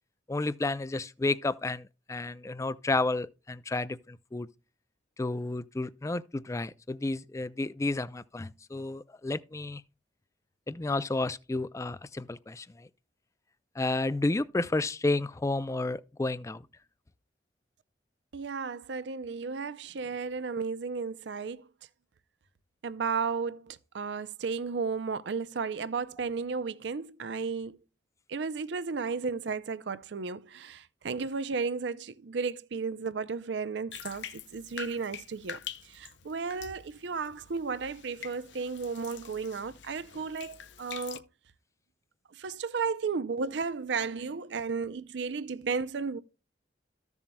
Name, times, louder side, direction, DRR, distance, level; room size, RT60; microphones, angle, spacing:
voice 1, 0.3-4.5 5.2-9.8 10.7-12.9 13.8-16.6, left 2 dB, 15° left, 0.3 m, -31 dB
voice 2, 18.3-21.6 22.8-27.8 28.3-35.6 35.9-41.2 42.4-46.2, right 5 dB, 70° right, 0.5 m, -34 dB
Bathtub (filling or washing), 33.9-41.2, left 9 dB, 70° left, 0.6 m, -45 dB
14.0 x 7.1 x 2.2 m
head